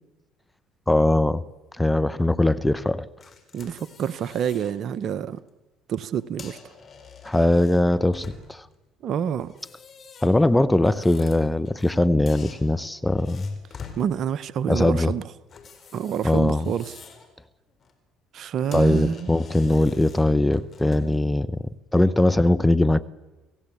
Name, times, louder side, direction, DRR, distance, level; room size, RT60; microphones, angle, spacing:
voice 1, 0.9-1.4 1.8-3.1 7.2-8.6 10.2-13.5 14.7-15.1 16.2-16.7 18.7-21.5 21.9-23.1, left 1 dB, 10° left, 0.9 m, -21 dB
sound 1, 3.2-4.7 5.2-5.4 6.2-8.7 9.4-12.0 12.3-14.0 15.5-17.3 17.7-17.9 18.4-18.5 18.7-21.2, left 5 dB, 45° left, 4.5 m, -46 dB
voice 2, 3.5-5.4 5.9-6.6 9.0-9.5 13.9-15.3 15.9-17.0 18.3-19.3, right 8 dB, 60° right, 0.8 m, -27 dB
27.5 x 17.0 x 8.4 m
hypercardioid pair, 65°, 0 cm